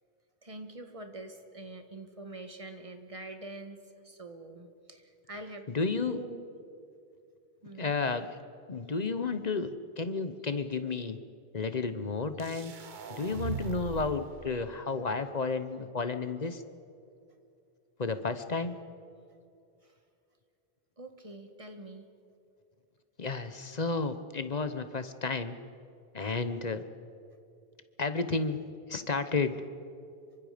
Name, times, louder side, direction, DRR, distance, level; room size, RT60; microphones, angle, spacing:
voice 1, 0.4-6.5 7.6-7.9 19.8-20.0 21.0-22.0, right 2 dB, 35° right, 6 dB, 1.6 m, -45 dB
voice 2, 5.7-6.2 7.8-8.4 8.7-11.2 11.5-12.7 13.1-16.6 18.0-18.8 23.2-25.5 26.1-26.8 28.0-28.6 28.9-29.6, left 4 dB, 45° left, 10 dB, 1.0 m, -32 dB
sound 1, 12.4-14.4, right 5 dB, 50° right, 1.0 m, -39 dB
26.5 x 24.5 x 5.1 m, 2.5 s
omnidirectional pair, 1.1 m